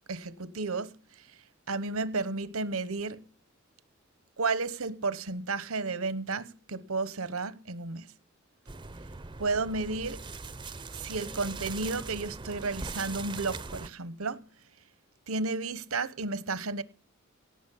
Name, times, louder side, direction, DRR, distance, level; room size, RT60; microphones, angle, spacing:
voice 1, 0.1-1.2 1.7-3.2 4.4-8.1 9.4-10.2 10.9-14.5 15.3-16.8, right 3 dB, 85° right, 1.1 m, -32 dB
sound 1, 8.7-13.9, right 4 dB, 20° right, 0.6 m, -41 dB
18.0 x 6.0 x 8.5 m
head